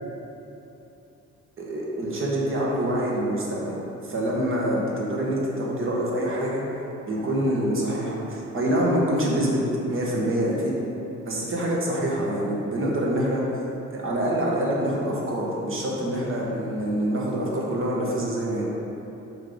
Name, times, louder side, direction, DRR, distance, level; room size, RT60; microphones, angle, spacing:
voice 1, 1.6-3.7 4.0-6.6 7.1-9.6 9.9-10.7 11.2-13.4 13.9-18.7, right 1 dB, 45° right, -4 dB, 1.5 m, -25 dB
5.5 x 3.8 x 5.2 m, 2.9 s
cardioid pair, 90°, 30 cm